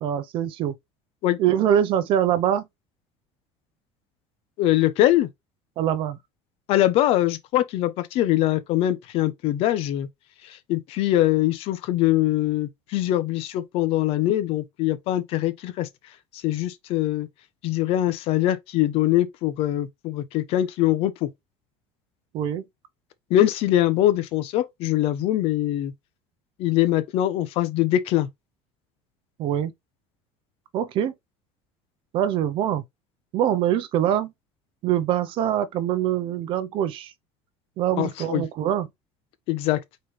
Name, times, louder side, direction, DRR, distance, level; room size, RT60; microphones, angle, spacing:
voice 1, 0.0-0.8 1.4-2.7 5.8-6.2 22.3-22.6 29.4-29.7 30.7-31.1 32.1-32.8 33.3-34.3 34.8-37.1 37.8-38.9, right 10 dB, 45° right, 0.6 m, -23 dB
voice 2, 4.6-5.3 6.7-10.1 10.4-15.9 16.3-17.3 17.6-21.3 23.3-25.9 26.6-28.3 38.0-38.5 39.5-39.8, left 14 dB, 55° left, 0.7 m, -23 dB
4.3 x 3.2 x 3.3 m
cardioid pair, 160°, 12 cm